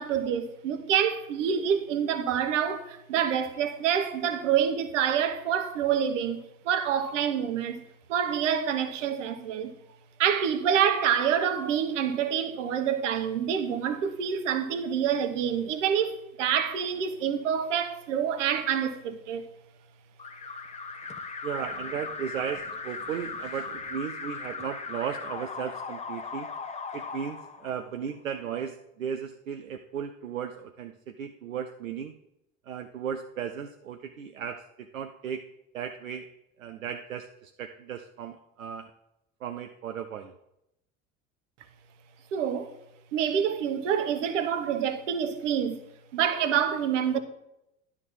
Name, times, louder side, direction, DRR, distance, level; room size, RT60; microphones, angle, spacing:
voice 1, 0.0-7.8 8.1-9.7 10.2-19.4 42.3-42.7 43.1-45.8 46.1-47.2, right 8 dB, 65° right, 1.0 m, -27 dB
Alarm, 20.2-28.1, left 4 dB, 15° left, 0.8 m, -38 dB
voice 2, 21.4-26.5 26.9-32.1 32.7-35.5 35.7-36.3 36.6-38.9 39.4-40.3, right 8 dB, 85° right, 0.6 m, -36 dB
10.5 x 3.6 x 7.1 m
figure-of-eight pair, 70°, 39 cm